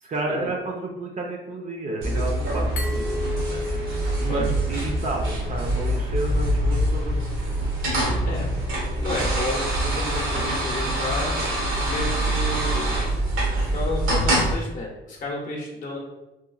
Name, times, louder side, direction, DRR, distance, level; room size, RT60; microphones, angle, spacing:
voice 1, 0.0-3.2 3.5-3.7 4.2-7.2 7.5-7.7 8.0-8.4, right 2 dB, 40° right, 0 dB, 0.4 m, -31 dB
sound 1, 2.0-14.5, right 1 dB, 85° right, 0.8 m, -25 dB
Glass, 2.8-5.5, left 2 dB, 85° left, 0.6 m, -34 dB
voice 2, 9.0-11.3 11.7-13.0 13.6-16.0, left 2 dB, 40° left, -2 dB, 0.6 m, -31 dB
2.9 x 2.3 x 2.3 m, 0.99 s
cardioid pair, 90°, 20 cm